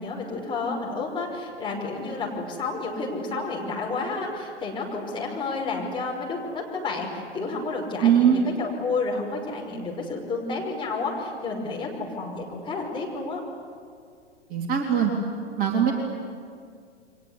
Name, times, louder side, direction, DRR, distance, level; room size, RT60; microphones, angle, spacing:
voice 1, 0.0-13.4, left 3 dB, 15° left, -2 dB, 5.7 m, -30 dB
voice 2, 8.0-8.4 14.5-15.1 15.6-15.9, right 9 dB, 25° right, 0 dB, 3.3 m, -20 dB
29.5 x 24.0 x 8.3 m, 2.2 s
figure-of-eight pair, 110°, 35 cm